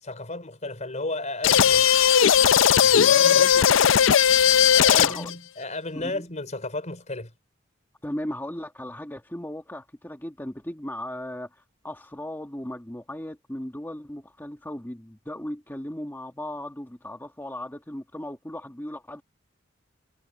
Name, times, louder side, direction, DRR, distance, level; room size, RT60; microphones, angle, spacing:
voice 1, 0.0-2.1 2.8-3.5 4.7-7.3, left 2 dB, 40° left, 4.3 m, -34 dB
sound 1, 1.4-5.3, left 8 dB, 75° left, 0.5 m, -17 dB
voice 2, 3.4-4.0 4.9-5.3 5.9-6.3 8.0-19.2, left 1 dB, 10° left, 1.7 m, -37 dB
head